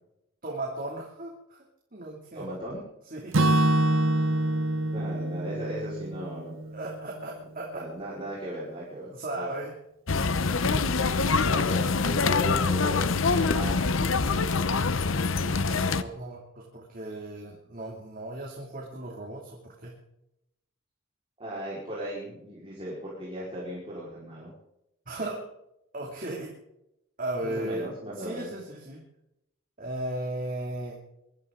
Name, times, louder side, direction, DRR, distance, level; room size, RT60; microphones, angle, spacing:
voice 1, 0.4-1.6 1.9-2.6 3.1-3.7 6.7-7.9 9.1-9.7 15.6-20.0 25.1-25.5 25.9-26.6 27.2-27.9 28.2-29.1 29.8-31.0, right 1 dB, 45° right, -2 dB, 2.7 m, -36 dB
voice 2, 2.3-2.8 4.9-6.7 7.7-9.5 10.7-10.8 11.5-14.3 21.4-24.5 27.4-28.5, right 1 dB, 30° right, -7 dB, 4.7 m, -37 dB
Acoustic guitar / Strum, 3.3-7.3, right 1 dB, 90° right, 0.8 m, -26 dB
sound 1, 10.1-16.0, left 4 dB, 85° left, 0.9 m, -25 dB
23.0 x 13.0 x 3.9 m, 0.83 s
head